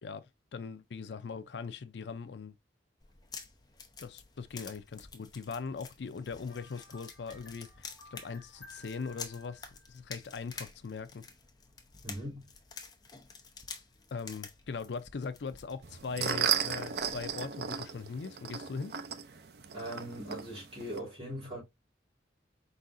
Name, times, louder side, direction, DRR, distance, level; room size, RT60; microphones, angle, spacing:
voice 1, 0.0-2.6 4.0-11.2 14.1-18.9, left 5 dB, 75° left, 0.5 m, -40 dB
sound 1, 3.0-17.5, left 5 dB, 25° left, 0.7 m, -50 dB
sound 2, 6.5-10.2, left 2 dB, ahead, 3.6 m, -56 dB
voice 2, 12.0-12.4 19.7-21.6, equal, 30° right, 3.1 m, -40 dB
sound 3, 15.8-21.0, right 8 dB, 65° right, 0.5 m, -35 dB
4.8 x 4.0 x 2.5 m
head